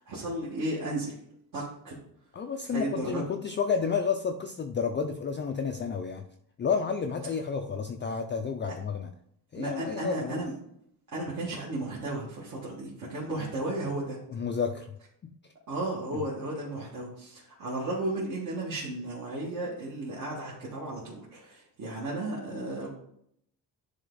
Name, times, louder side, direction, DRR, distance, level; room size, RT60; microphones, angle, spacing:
voice 1, 0.1-1.1 1.5-2.0 2.7-3.2 9.5-10.5 11.1-14.2 15.7-22.9, right 2 dB, 50° right, -7 dB, 1.9 m, -34 dB
voice 2, 2.3-6.3 6.6-9.1 9.5-10.4 14.3-15.0 15.2-15.3 16.1-16.2, left 6 dB, 30° left, 4 dB, 0.3 m, -31 dB
10.5 x 3.5 x 3.9 m, 0.72 s
cardioid pair, 150°, 41 cm